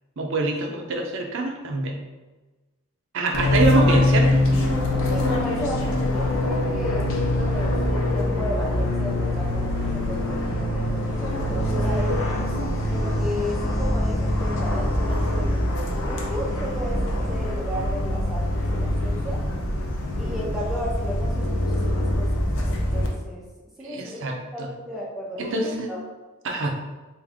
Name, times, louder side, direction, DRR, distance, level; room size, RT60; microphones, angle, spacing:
voice 1, 0.2-2.0 3.1-4.4 23.8-24.7 25.4-25.9 26.4-26.7, right 2 dB, 60° right, 2 dB, 0.6 m, -25 dB
Fixed-wing aircraft airplane, 3.3-23.1, left 1 dB, 65° left, 0.7 m, -24 dB
voice 2, 5.1-12.2 12.9-19.4 20.2-23.4 23.8-26.0, equal, ahead, -4 dB, 0.5 m, -34 dB
3.6 x 2.6 x 3.5 m, 1.2 s
head